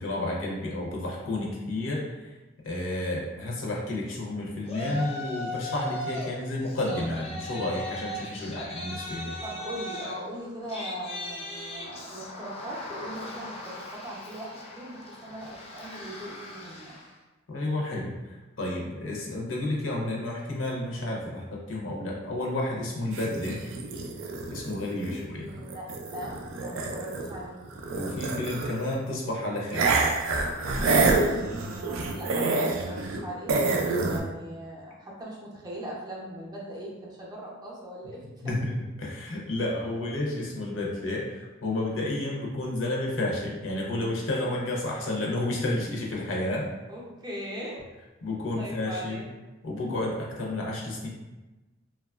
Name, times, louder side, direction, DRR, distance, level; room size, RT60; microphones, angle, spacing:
voice 1, 0.0-2.2 2.6-9.3 17.5-18.1 18.6-23.6 24.5-25.4 27.9-29.9 38.4-46.6 48.2-49.2 49.6-51.1, left 1 dB, 70° left, -2 dB, 0.6 m, -31 dB
Yell, 4.7-6.3 6.7-17.1, left 1 dB, 30° left, 0.4 m, -38 dB
voice 2, 9.4-17.0 25.1-27.9 31.4-38.5 46.9-47.8 48.6-49.4, equal, 20° right, -4 dB, 0.5 m, -40 dB
sound 1, 23.1-27.4 27.6-28.9 29.7-33.2 33.5-34.2, right 3 dB, 80° right, 0.4 m, -27 dB
2.9 x 2.3 x 2.3 m, 1.1 s
head